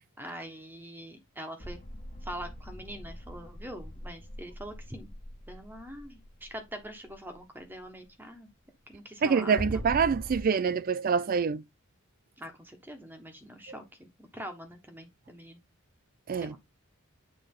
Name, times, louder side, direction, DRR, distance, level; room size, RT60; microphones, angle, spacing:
voice 1, 0.2-1.8 2.2-5.1 5.5-8.5 8.9-9.8 12.4-15.6 16.4-16.6, equal, 10° right, 1.1 m, -44 dB
sound 1, 1.6-7.1 9.6-10.4, equal, 35° left, 1.4 m, -41 dB
voice 2, 9.2-11.6 16.3-16.5, right 6 dB, 40° right, 0.3 m, -26 dB
8.6 x 3.4 x 3.6 m
head